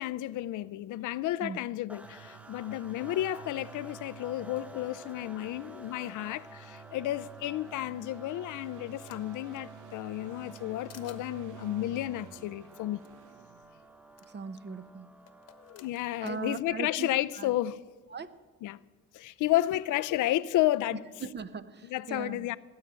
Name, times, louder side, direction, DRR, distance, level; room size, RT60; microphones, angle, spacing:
voice 1, 0.0-13.1 15.6-17.8 18.6-18.8 19.1-21.0 21.9-22.6, left 14 dB, 80° left, 0.6 m, -32 dB
sound 1, 1.9-16.1, right 1 dB, 5° right, 0.5 m, -51 dB
sound 2, 2.0-14.3 16.0-16.1, right 11 dB, 80° right, 0.8 m, -52 dB
sound 3, 8.2-9.5 9.9-10.6 10.9-11.2 12.7-12.8 13.0-13.1 14.2-14.3 15.3-16.4, left 9 dB, 55° left, 1.2 m, -55 dB
voice 2, 14.3-15.1 16.2-17.1 17.4-17.5 18.1-18.4 21.2-22.5, right 5 dB, 35° right, 0.8 m, -39 dB
18.0 x 8.2 x 8.8 m
cardioid pair, 90°, 30 cm